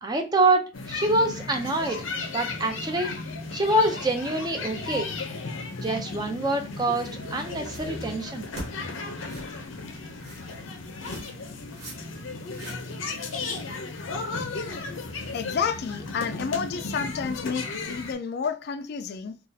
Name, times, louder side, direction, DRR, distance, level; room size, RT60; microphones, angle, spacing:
voice 1, 0.0-2.0 2.3-3.1 3.5-5.1 5.8-8.5, right 2 dB, 20° right, 0.4 m, -25 dB
sound 1, 0.7-18.1, left 3 dB, 85° left, 0.6 m, -35 dB
sound 2, 7.6-8.0 8.5-8.7 9.3-9.6 10.2-10.6 11.0-11.4 11.7-12.0 12.3-13.0, right 1 dB, 55° right, 1.1 m, -41 dB
voice 2, 15.3-19.4, left 6 dB, 55° left, 0.3 m, -30 dB
3.9 x 2.3 x 2.6 m
head